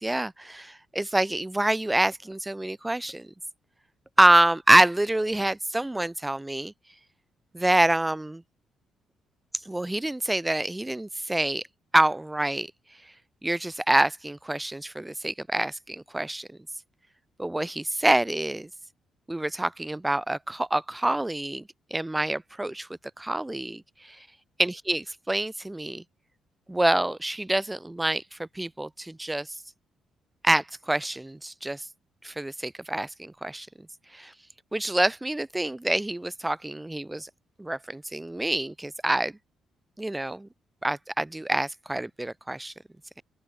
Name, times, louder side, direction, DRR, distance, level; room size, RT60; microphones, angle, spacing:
voice 1, 0.0-3.3 4.2-6.7 7.5-8.4 9.6-11.6 11.9-12.7 13.4-16.5 17.4-18.7 19.3-22.9 23.2-24.3 24.6-26.0 26.7-29.6 30.4-31.9 32.2-33.7 34.1-34.3 34.7-37.3 37.6-39.3 40.0-40.5 40.8-42.7, right 1 dB, 10° right, 1.8 m, -26 dB
open air
cardioid pair, 90°, 0 cm